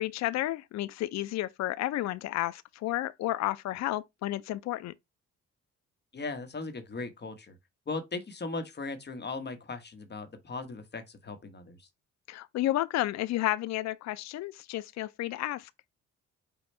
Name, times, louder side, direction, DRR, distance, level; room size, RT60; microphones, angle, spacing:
voice 1, 0.0-4.9 12.3-15.7, left 15 dB, 60° left, 0.4 m, -31 dB
voice 2, 6.1-7.6 7.9-11.9, left 3 dB, 35° left, 1.0 m, -38 dB
5.3 x 2.3 x 4.2 m
cardioid pair, 90°, 30 cm